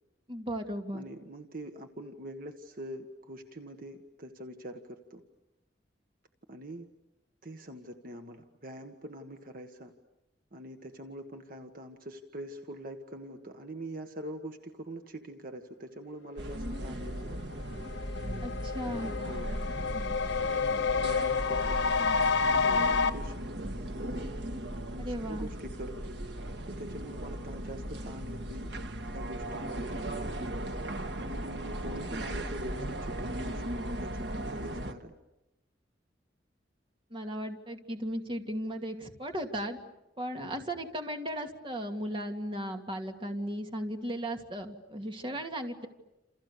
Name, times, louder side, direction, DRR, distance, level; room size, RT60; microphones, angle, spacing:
voice 1, 0.3-1.0 18.4-19.1 25.0-25.5 32.1-32.2 37.1-39.8 40.2-45.9, equal, 30° right, 4 dB, 2.5 m, -36 dB
voice 2, 0.9-5.2 6.5-6.9 7.4-9.9 10.5-17.4 18.7-19.6 20.4-23.9 24.9-26.2 26.6-28.7 29.1-30.1 31.2-35.1 40.4-40.5 45.3-45.4, right 1 dB, 50° right, 6 dB, 1.6 m, -44 dB
sound 1, 16.4-34.9, right 1 dB, 70° right, 1.7 m, -37 dB
sound 2, 17.3-17.4 17.7-23.1, left 5 dB, 90° left, 1.3 m, -29 dB
29.5 x 28.5 x 6.8 m, 0.94 s
head